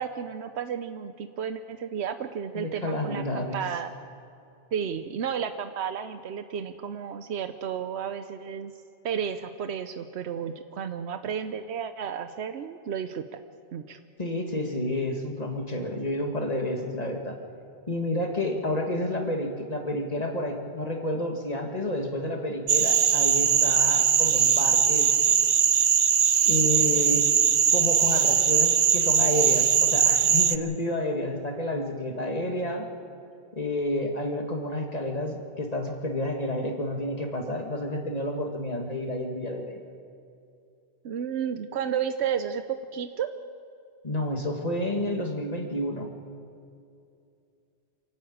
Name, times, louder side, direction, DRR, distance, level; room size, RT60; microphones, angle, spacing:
voice 1, 0.0-3.9 4.7-8.7 9.0-13.4 13.7-14.0 41.0-43.3, right 8 dB, 85° right, 10 dB, 1.0 m, -32 dB
voice 2, 2.5-3.6 14.2-17.4 17.9-25.1 26.4-27.3 27.7-32.9 33.6-39.8 44.0-46.1, left 1 dB, 40° left, 3 dB, 2.0 m, -30 dB
sound 1, 22.7-30.6, right 8 dB, 50° right, 0.6 m, -21 dB
26.5 x 12.0 x 8.7 m, 2.5 s
omnidirectional pair, 1.1 m